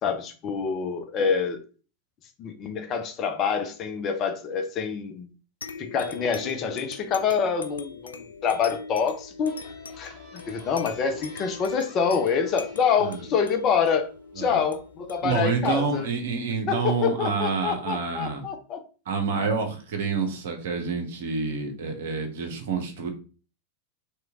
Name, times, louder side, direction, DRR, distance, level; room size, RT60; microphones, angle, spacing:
voice 1, 0.0-1.6 2.4-5.3 5.8-9.6 10.0-14.1 14.4-16.1 16.7-18.8, left 6 dB, 30° left, 0.6 m, -26 dB
sound 1, 5.6-16.7, left 4 dB, 70° left, 0.4 m, -42 dB
sound 2, 9.4-14.9, left 3 dB, 5° right, 1.4 m, -51 dB
voice 2, 15.2-18.4 19.1-23.1, right 5 dB, 55° right, 0.9 m, -28 dB
3.1 x 3.1 x 3.6 m
figure-of-eight pair, 90°, 0 cm